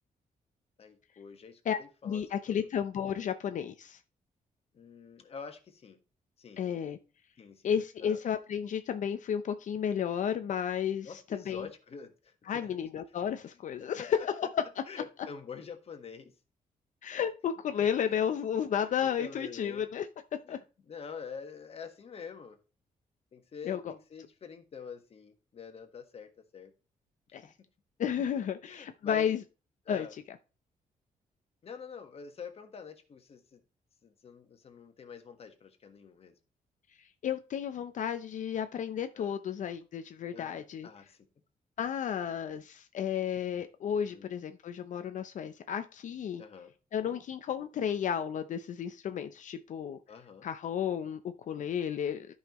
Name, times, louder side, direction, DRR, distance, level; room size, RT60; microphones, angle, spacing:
voice 1, 0.8-2.7 4.7-6.0 6.4-6.6 7.4-8.2 11.0-12.8 13.5-13.6 14.0-14.1 14.9-16.3 18.0-18.2 18.8-19.9 20.4-22.6 23.3-26.7 27.3-27.4 28.6-29.4 29.8-30.1 31.6-33.6 34.0-36.3 39.1-39.4 40.3-41.2 44.0-44.3 46.4-46.7 47.0-47.2 50.1-50.5, left 6 dB, 45° left, 7 dB, 1.5 m, -46 dB
voice 2, 2.0-4.0 6.6-7.0 7.6-11.7 12.5-14.6 17.0-20.1 20.5-20.6 23.6-23.9 27.3-27.5 28.0-29.4 29.9-30.1 37.0-40.9 41.8-46.4 46.9-50.0 50.4-51.2 51.5-52.3, left 8 dB, 60° left, 9 dB, 0.7 m, -32 dB
13.0 x 5.6 x 3.1 m, 0.33 s
cardioid pair, 130°, 14 cm